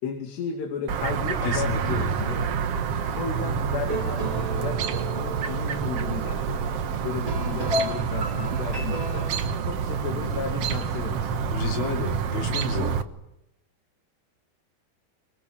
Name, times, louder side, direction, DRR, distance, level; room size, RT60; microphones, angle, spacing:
voice 1, 0.0-2.5 3.2-6.6 7.0-9.3 9.7-11.3, left 6 dB, 90° left, 3 dB, 4.5 m, -34 dB
Chirp tweet, 0.9-13.0, right 6 dB, 75° right, 1.4 m, -28 dB
voice 2, 1.4-2.1 11.5-13.0, left 2 dB, 65° left, 3 dB, 4.6 m, -30 dB
sound 1, 3.9-9.6, equal, 10° right, 5.3 m, -34 dB
26.0 x 22.5 x 8.8 m, 0.86 s
omnidirectional pair, 4.7 m